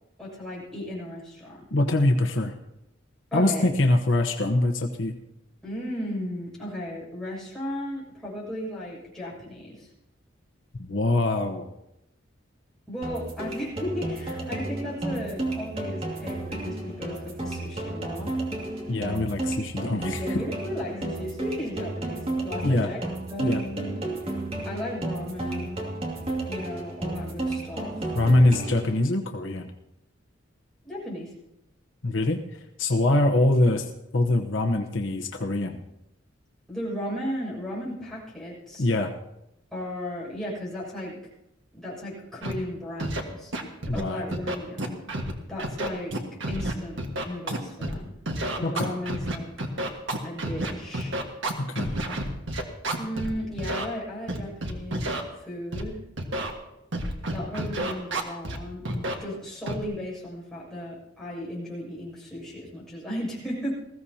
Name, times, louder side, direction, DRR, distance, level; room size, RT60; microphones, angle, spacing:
voice 1, 0.2-1.6 3.3-3.7 5.6-9.9 12.9-18.3 20.2-23.0 23.3-23.9 24.6-25.8 26.5-28.0 30.8-31.3 36.7-38.9 39.7-41.2 41.7-43.5 43.9-45.0 45.5-46.1 46.5-48.1 48.5-49.5 50.2-51.1 53.0-55.1 55.4-56.0 57.3-63.7, left 1 dB, 5° left, -6 dB, 6.7 m, -35 dB
voice 2, 1.7-2.5 3.3-5.1 10.8-11.7 18.9-20.4 22.6-22.9 23.4-23.6 28.1-29.7 32.0-32.4 32.8-33.9 34.1-35.8 38.8-39.1 43.9-44.2 48.6-48.9 51.6-51.9, left 2 dB, 70° left, 4 dB, 1.0 m, -23 dB
sound 1, 13.0-29.0, right 2 dB, 30° right, 2.6 m, -32 dB
Scratching (performance technique), 42.4-42.5 43.0-43.2 43.5-44.0 44.3-45.3 45.6-47.9 48.3-53.3 53.6-53.8 54.3-55.2 55.7-55.8 56.2-56.5 56.9-58.6 58.9-59.1 59.7-59.8, right 1 dB, 70° right, 1.7 m, -29 dB
20.0 x 15.5 x 2.9 m, 0.87 s
head